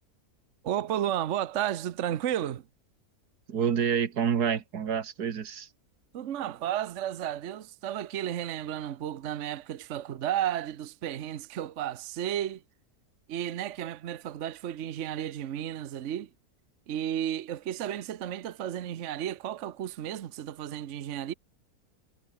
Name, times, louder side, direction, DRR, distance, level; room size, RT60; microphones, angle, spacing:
voice 1, 0.6-2.6 6.1-12.6 13.3-16.3 16.9-21.3, right 11 dB, 55° right, 1.1 m, -33 dB
voice 2, 3.5-5.7, right 7 dB, 85° right, 2.0 m, -28 dB
omnidirectional pair, 1.6 m